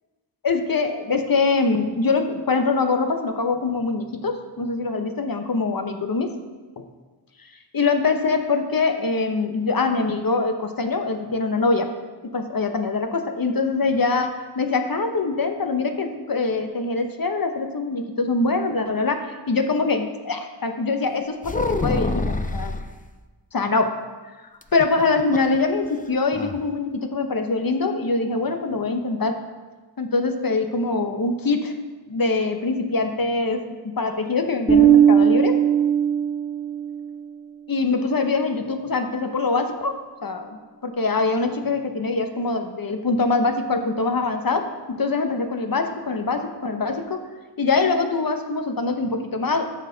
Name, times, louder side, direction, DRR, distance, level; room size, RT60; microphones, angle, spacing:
voice 1, 0.4-6.3 6.8-6.9 7.7-11.9 12.2-22.2 22.5-22.8 23.5-24.0 24.7-29.4 30.0-31.7 32.1-35.6 37.7-47.2 47.6-49.6, left 3 dB, 50° left, 6 dB, 0.9 m, -23 dB
sound 1, 21.4-22.9 24.6-25.6 25.9-26.0 26.3-26.6, left 2 dB, 20° left, 0.5 m, -26 dB
Bass guitar, 34.7-37.1, right 9 dB, 10° right, 1.7 m, -17 dB
13.0 x 4.3 x 3.9 m, 1.3 s
wide cardioid pair, 55°, 44 cm